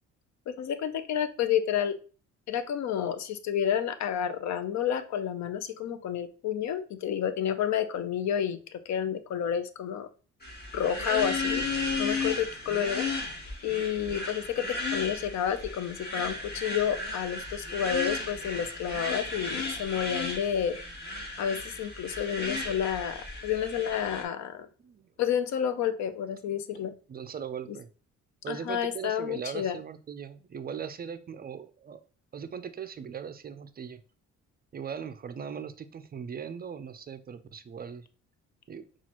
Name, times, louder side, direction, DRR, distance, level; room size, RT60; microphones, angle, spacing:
voice 1, 0.5-1.9 2.5-10.1 10.7-11.7 12.0-13.1 13.6-20.8 21.4-24.7 25.2-26.9 28.5-29.8, left 9 dB, 65° left, 11 dB, 0.5 m, -30 dB
sound 1, 10.4-24.2, left 3 dB, 30° left, 1.5 m, -34 dB
voice 2, 27.1-27.9 28.4-32.0 32.3-34.0 34.7-38.1 38.7-38.9, right 7 dB, 30° right, 9 dB, 0.4 m, -39 dB
5.8 x 2.4 x 2.9 m, 0.37 s
cardioid pair, 90°, 30 cm